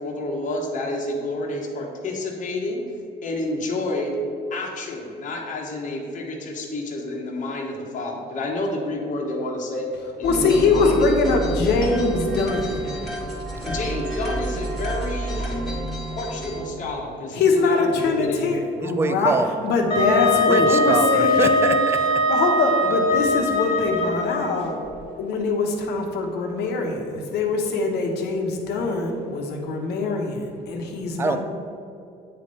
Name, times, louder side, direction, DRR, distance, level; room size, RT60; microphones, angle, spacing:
voice 1, 0.0-2.8 3.2-4.2 4.5-9.9 10.2-11.5 13.7-15.6 16.1-18.6, left 2 dB, 50° left, -2 dB, 1.2 m, -29 dB
voice 2, 10.2-12.9 17.3-19.3 19.6-21.7 22.2-24.8 25.2-31.4, left 3 dB, 75° left, 2 dB, 1.2 m, -23 dB
sound 1, 10.2-16.7, right 1 dB, ahead, 1.7 m, -29 dB
voice 3, 18.8-19.5 20.5-22.2 31.2-31.4, right 4 dB, 15° right, 10 dB, 0.3 m, -24 dB
Wind instrument woodwind instrument, 19.9-24.6, left 1 dB, 30° left, 1.6 m, -21 dB
8.7 x 3.4 x 5.4 m, 2.6 s
cardioid pair, 110°, 17 cm